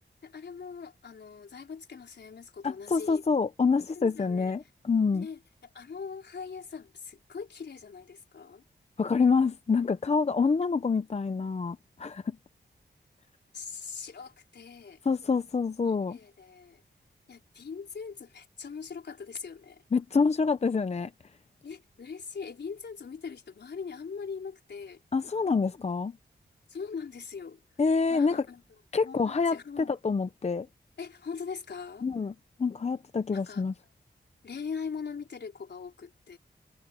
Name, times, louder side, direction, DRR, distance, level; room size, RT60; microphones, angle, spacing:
voice 1, 0.2-3.2 3.9-4.5 5.1-8.6 13.5-15.0 16.1-16.8 17.3-19.8 21.6-25.0 26.7-27.6 28.1-28.6 29.0-30.0 31.0-32.1 33.3-33.6 34.4-36.4, left 5 dB, 75° left, 4.2 m, -41 dB
voice 2, 2.6-5.3 9.0-12.4 15.0-16.2 19.9-21.1 25.1-26.1 27.8-28.4 28.9-30.7 32.0-32.3 32.6-33.7, left 4 dB, 40° left, 0.7 m, -27 dB
wide cardioid pair, 115°, 18 cm